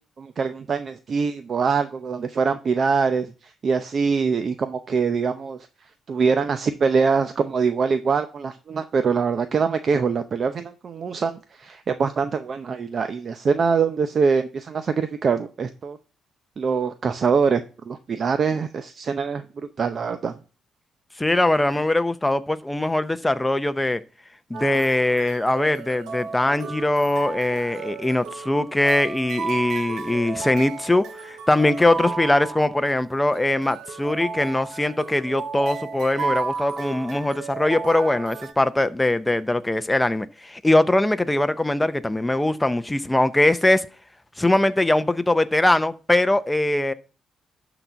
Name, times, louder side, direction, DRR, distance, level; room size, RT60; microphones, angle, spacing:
voice 1, 0.2-5.6 6.1-16.0 16.6-20.3, right 5 dB, 45° right, 0.7 m, -23 dB
voice 2, 21.2-24.0 24.5-43.9 44.4-46.9, left 1 dB, 10° left, 0.7 m, -21 dB
sound 1, 24.5-38.5, right 5 dB, 75° right, 1.3 m, -33 dB
12.0 x 4.1 x 5.7 m
cardioid pair, 115°, 0 cm